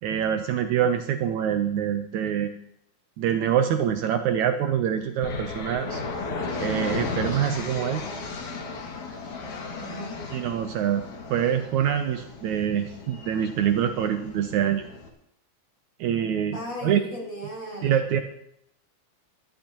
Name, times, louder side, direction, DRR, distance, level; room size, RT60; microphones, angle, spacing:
voice 1, 0.0-2.5 3.2-6.0 6.6-8.0 10.3-11.0 11.3-14.8 16.0-17.0 17.8-18.2, right 9 dB, 75° right, 7 dB, 2.0 m, -25 dB
sound 1, 5.2-15.1, left 3 dB, 70° left, 3.5 m, -35 dB
voice 2, 9.7-10.2 16.5-18.0, equal, 35° left, -3 dB, 6.0 m, -37 dB
24.0 x 11.0 x 3.0 m, 0.75 s
omnidirectional pair, 3.7 m